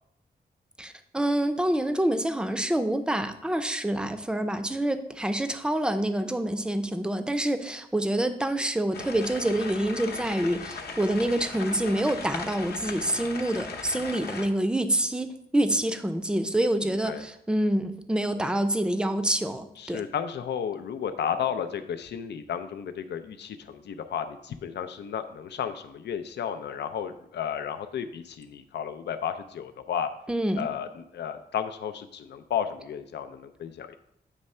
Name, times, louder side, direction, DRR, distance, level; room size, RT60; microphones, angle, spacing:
voice 1, 0.8-20.1 30.3-30.7, right 1 dB, 5° right, 9 dB, 0.5 m, -27 dB
sound 1, 8.9-14.5, left 4 dB, 70° left, 0.8 m, -38 dB
voice 2, 16.8-17.2 19.8-30.1 30.6-34.0, left 8 dB, 90° left, 9 dB, 0.5 m, -33 dB
8.2 x 3.2 x 5.4 m, 0.77 s
wide cardioid pair, 135°, 17 cm